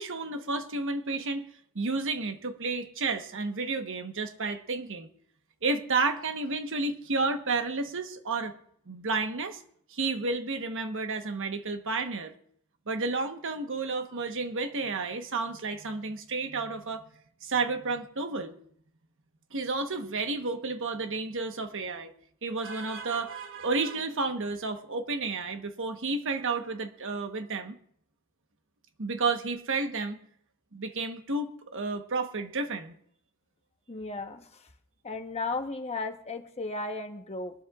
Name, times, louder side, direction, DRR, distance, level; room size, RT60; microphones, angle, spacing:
voice 1, 0.0-1.4 1.7-5.1 5.6-8.5 8.9-9.6 9.9-12.3 12.9-17.0 17.4-18.5 19.5-22.1 22.4-27.8 29.0-30.2 30.7-32.9, right 3 dB, 60° right, 7 dB, 1.2 m, -31 dB
voice 2, 33.9-34.7 35.0-37.5, left 3 dB, 30° left, 5 dB, 1.1 m, -35 dB
23.0 x 12.5 x 2.5 m, 0.67 s
head